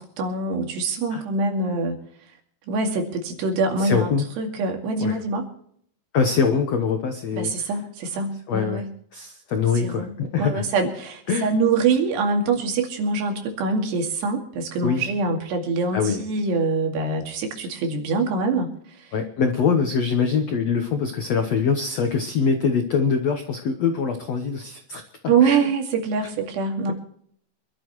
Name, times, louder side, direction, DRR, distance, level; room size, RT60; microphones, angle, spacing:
voice 1, 0.0-2.0 2.7-5.5 7.3-8.9 9.8-18.7 19.0-19.1 25.3-26.9, right 4 dB, 75° right, 3 dB, 4.4 m, -24 dB
voice 2, 3.8-4.2 5.0-5.2 6.1-7.5 8.5-8.8 9.1-10.6 11.3-11.5 14.8-15.1 15.9-16.2 19.1-25.0 25.4-25.6, left 5 dB, 90° left, 5 dB, 1.4 m, -23 dB
26.0 x 12.5 x 3.2 m, 0.64 s
omnidirectional pair, 4.9 m